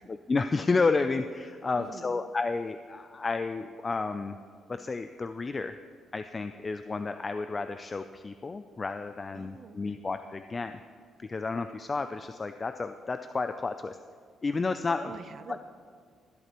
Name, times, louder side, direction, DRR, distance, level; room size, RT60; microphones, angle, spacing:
voice 1, 0.1-4.4 4.7-5.8 6.1-10.8 11.2-14.0 14.4-15.1 15.5-15.6, left 4 dB, 30° left, 9 dB, 0.4 m, -31 dB
voice 2, 1.8-2.2 9.3-10.0 15.0-15.6, right 6 dB, 55° right, 11 dB, 0.6 m, -46 dB
22.0 x 8.1 x 3.0 m, 2.1 s
cardioid pair, 90°, 0 cm